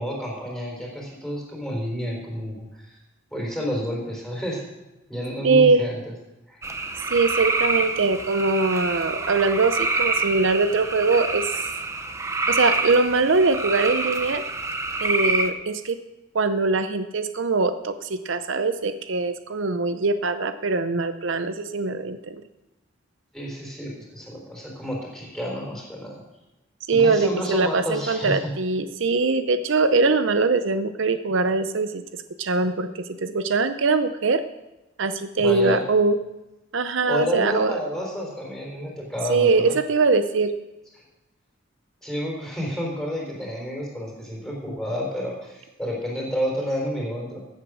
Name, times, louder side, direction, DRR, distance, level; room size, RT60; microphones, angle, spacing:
voice 1, 0.0-3.0 3.3-4.7 5.1-6.0 6.5-6.6 23.3-26.2 26.9-28.5 35.4-35.8 37.1-39.8 42.0-47.4, equal, ahead, -2 dB, 3.8 m, -30 dB
voice 2, 5.4-5.8 7.1-11.5 12.5-14.4 15.0-16.0 16.3-22.4 26.9-34.4 35.0-36.2 36.7-37.7 39.3-40.5, right 3 dB, 70° right, 10 dB, 0.6 m, -22 dB
sound 1, 6.6-15.5, right 3 dB, 15° right, 0.8 m, -27 dB
15.0 x 8.1 x 6.3 m, 1.0 s
head